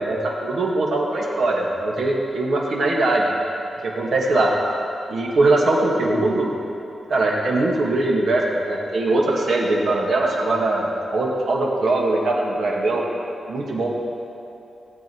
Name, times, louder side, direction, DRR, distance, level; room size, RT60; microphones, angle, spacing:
voice 1, 0.0-3.3 3.8-4.5 5.1-6.5 7.1-13.0 13.5-13.9, right 2 dB, 70° right, -2 dB, 2.0 m, -21 dB
18.0 x 8.3 x 4.7 m, 2.8 s
wide cardioid pair, 135°, 0 cm